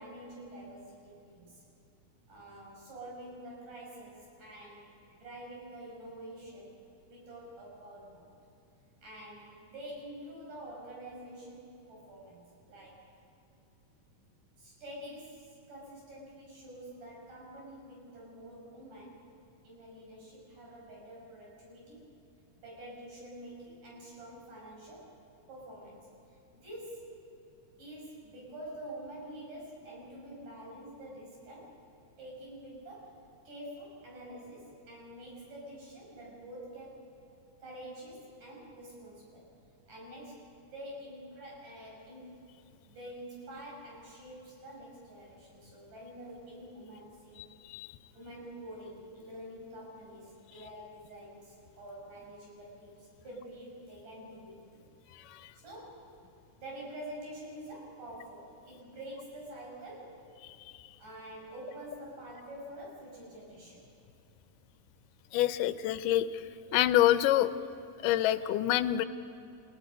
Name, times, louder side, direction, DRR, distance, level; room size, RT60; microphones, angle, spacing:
voice 1, 0.0-1.6 2.3-8.3 9.0-13.0 14.6-19.3 19.6-22.1 22.6-25.1 25.5-26.1 26.5-27.1 27.8-31.8 32.2-37.1 37.6-39.4 39.9-40.5 40.7-42.4 42.8-47.4 48.1-54.6 55.6-56.1 56.6-60.2 61.0-63.8, right 1 dB, 70° right, -4 dB, 7.9 m, -47 dB
voice 2, 65.3-66.3 66.7-67.5 68.0-69.1, left 13 dB, 80° left, 13 dB, 2.2 m, -26 dB
29.5 x 17.5 x 5.4 m, 2.8 s
omnidirectional pair, 3.8 m